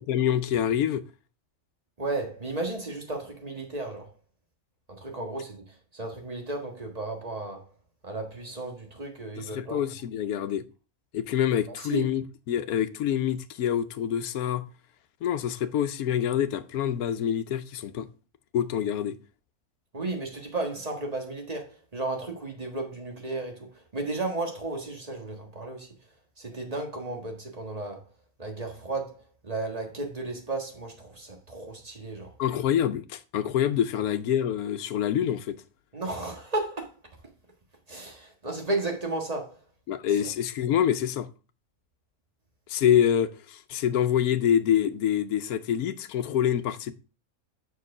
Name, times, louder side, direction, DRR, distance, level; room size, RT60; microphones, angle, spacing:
voice 1, 0.1-1.0 9.4-10.6 11.1-14.7 15.2-18.1 18.5-19.2 32.4-35.6 39.9-41.3 42.7-46.9, left 9 dB, 80° left, 1.1 m, -26 dB
voice 2, 2.0-4.1 4.9-7.7 8.0-9.8 11.7-12.1 19.9-26.0 26.4-28.1 28.4-32.3 35.9-36.9 37.9-39.6 40.1-40.3, right 2 dB, 25° right, 1.6 m, -34 dB
6.9 x 4.7 x 4.8 m
omnidirectional pair, 1.5 m